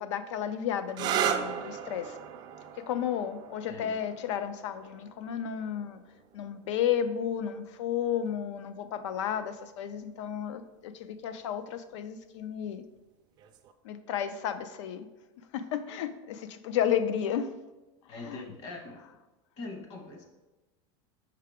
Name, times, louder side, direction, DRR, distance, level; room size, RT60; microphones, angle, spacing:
voice 1, 0.0-2.2 2.8-6.0 6.3-12.8 13.8-15.1 15.5-17.5 18.2-18.4, left 9 dB, 85° left, 11 dB, 0.5 m, -32 dB
sound 1, 0.9-8.3 9.3-9.8 13.4-13.7, right 8 dB, 30° right, 0.3 m, -37 dB
voice 2, 3.7-4.0 18.1-19.0 19.6-20.2, left 2 dB, 40° left, 2 dB, 1.1 m, -42 dB
5.7 x 4.7 x 3.5 m, 1.1 s
supercardioid pair, 160°, 15 cm